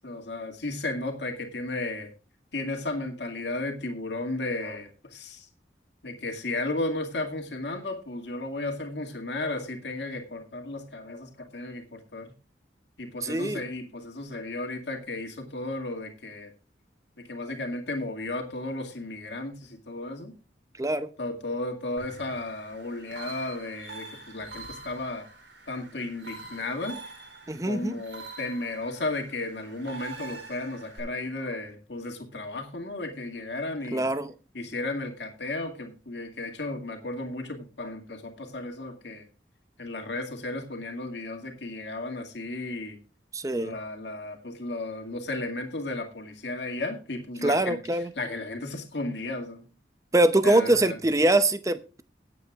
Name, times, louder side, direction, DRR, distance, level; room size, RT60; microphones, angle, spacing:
voice 1, 0.0-2.1 2.5-5.5 6.0-12.3 13.0-16.5 17.2-20.3 21.2-25.3 25.7-27.0 27.7-34.1 34.5-39.3 39.8-43.0 43.5-49.6 50.4-51.0, left 2 dB, 75° left, 2.1 m, -34 dB
voice 2, 13.2-13.6 20.8-21.1 27.5-28.0 33.9-34.3 43.3-43.8 47.4-48.1 50.1-52.0, right 1 dB, 20° right, 0.7 m, -23 dB
sound 1, 22.0-31.0, right 3 dB, 90° right, 4.6 m, -45 dB
22.0 x 8.4 x 2.4 m
head